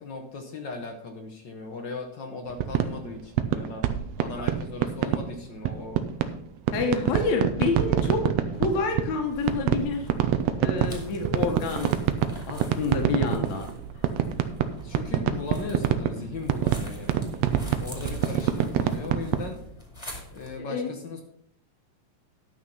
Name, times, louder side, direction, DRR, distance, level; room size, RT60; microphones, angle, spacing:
voice 1, 0.0-3.9 4.2-6.0 13.0-13.3 14.8-17.4 17.8-19.6 20.3-21.2, left 3 dB, 55° left, 5 dB, 1.3 m, -38 dB
sound 1, 2.5-5.2 5.6-6.4 6.7-9.2 9.5-19.5, right 11 dB, 75° right, 1.8 m, -25 dB
voice 2, 6.7-8.3 8.5-10.1 10.6-11.9 12.5-13.7 20.6-20.9, left 3 dB, 70° left, 3 dB, 2.8 m, -28 dB
sound 2, 9.2-20.6, left 1 dB, 10° left, 1.9 m, -45 dB
11.0 x 6.2 x 5.6 m, 0.67 s
omnidirectional pair, 3.4 m